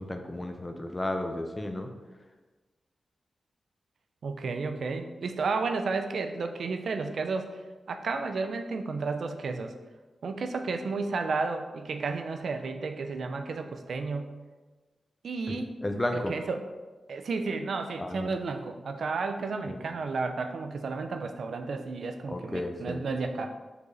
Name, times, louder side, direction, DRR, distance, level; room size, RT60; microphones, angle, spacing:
voice 1, 0.0-1.9 15.5-16.3 18.0-18.3 19.7-19.8 22.3-23.0, left 1 dB, 20° left, 5 dB, 0.6 m, -33 dB
voice 2, 4.2-7.6 7.9-9.7 10.2-14.3 15.2-15.8 16.3-16.6 17.1-23.5, right 4 dB, 75° right, 6 dB, 0.5 m, -32 dB
5.1 x 4.9 x 4.0 m, 1.3 s
wide cardioid pair, 135°, 0 cm